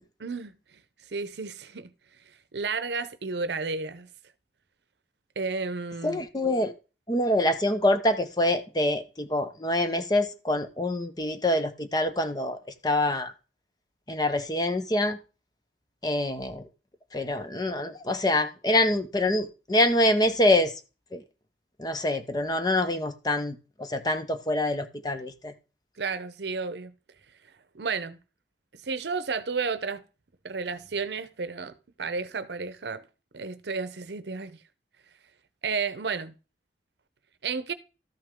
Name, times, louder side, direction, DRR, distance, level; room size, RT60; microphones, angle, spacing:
voice 1, 0.2-0.5 1.1-1.9 2.5-4.1 5.4-6.2 26.0-26.9 27.7-28.2 28.8-30.0 30.4-33.0 33.3-34.6 35.6-36.3 37.4-37.7, right 4 dB, 75° right, 0.7 m, -32 dB
voice 2, 6.0-6.7 7.1-12.6 12.8-13.3 14.1-15.2 16.0-16.6 17.1-20.7 21.1-21.2 21.8-25.5, left 1 dB, 20° left, 0.7 m, -25 dB
13.0 x 5.4 x 3.7 m
head